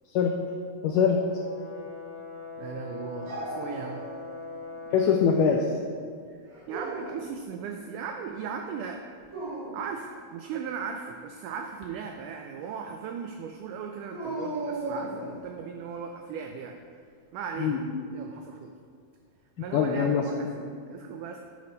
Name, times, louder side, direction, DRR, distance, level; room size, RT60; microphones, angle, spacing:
voice 1, 0.8-1.2 4.9-5.7 17.6-18.0 19.7-20.7, left 6 dB, 85° left, 2 dB, 1.8 m, -24 dB
Brass instrument, 1.0-5.3, left 3 dB, 60° left, 2.4 m, -41 dB
voice 2, 2.6-4.0 6.3-6.4 6.7-9.0 9.7-16.8 17.3-18.7 19.6-21.4, right 6 dB, 90° right, 3 dB, 1.8 m, -37 dB
Dog, 3.3-4.4 4.8-5.5 6.5-7.3 9.2-9.9 14.1-15.4, right 2 dB, 55° right, 3.6 m, -36 dB
10.5 x 5.2 x 4.0 m, 2.1 s
omnidirectional pair, 4.2 m